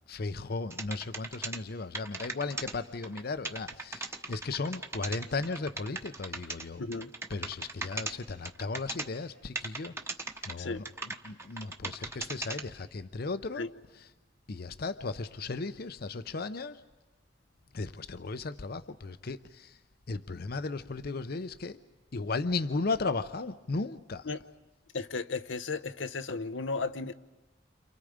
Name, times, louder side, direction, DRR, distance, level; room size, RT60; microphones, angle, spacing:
voice 1, 0.1-6.8 7.3-9.9 10.4-13.7 14.0-14.1 14.5-16.8 17.7-19.8 20.1-21.8 22.1-24.3, left 3 dB, 55° left, 0.7 m, -35 dB
sound 1, 0.7-1.6 1.9-2.7 3.0-3.2 3.4-6.6 6.9-8.1 8.4-9.1 9.5-10.5 10.8-12.6, right 3 dB, 15° right, 1.0 m, -37 dB
voice 2, 6.8-7.1 10.6-10.8 13.6-13.7 24.2-24.4 24.9-27.1, left 3 dB, 85° left, 0.9 m, -34 dB
30.0 x 27.5 x 5.1 m
head